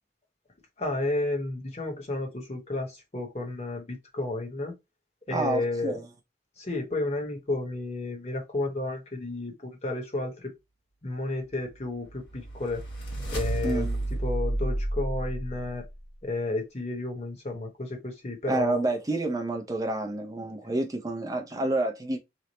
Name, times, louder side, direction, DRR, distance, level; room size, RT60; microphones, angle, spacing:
voice 1, 0.8-4.7 5.3-6.0 6.6-10.5 11.0-12.9 13.3-13.9 14.2-15.9 16.2-18.9, left 2 dB, 35° left, 0.9 m, -32 dB
voice 2, 5.3-6.0 13.6-14.0 18.5-22.2, right 2 dB, 20° right, 0.4 m, -29 dB
sound 1, 11.8-16.1, right 1 dB, 65° left, 1.3 m, -31 dB
3.0 x 2.1 x 4.0 m
head